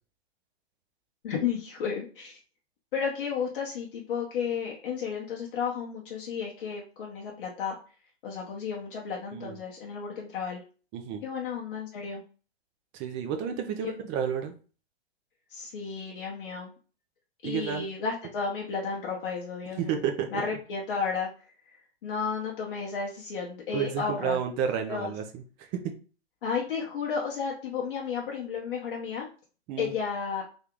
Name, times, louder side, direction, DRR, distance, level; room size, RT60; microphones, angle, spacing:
voice 1, 1.2-2.4 2.9-7.8 8.2-10.6 11.2-12.2 13.7-13.9 15.5-16.7 17.4-20.0 20.3-21.3 22.0-24.4 24.9-25.1 26.4-29.3 29.8-30.4, left 6 dB, 50° left, -3 dB, 1.0 m, -33 dB
voice 2, 10.9-11.2 12.9-14.5 17.4-17.9 19.8-20.4 23.7-25.9 29.7-29.9, right 7 dB, 25° right, 6 dB, 0.5 m, -31 dB
3.5 x 2.7 x 3.6 m, 0.37 s
figure-of-eight pair, 110°, 33 cm